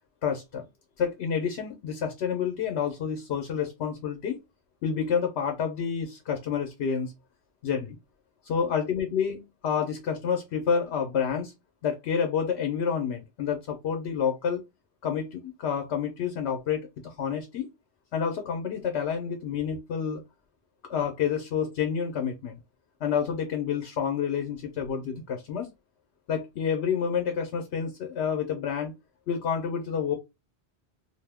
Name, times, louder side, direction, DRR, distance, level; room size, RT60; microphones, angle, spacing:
voice 1, 0.2-0.6 1.0-4.4 4.8-7.1 7.6-8.0 8.4-11.5 11.8-14.6 15.0-17.7 18.1-20.2 20.9-22.6 23.0-25.7 26.3-28.9 29.3-30.2, left 7 dB, 75° left, 0.9 m, -29 dB
2.6 x 2.0 x 3.4 m
omnidirectional pair, 1.1 m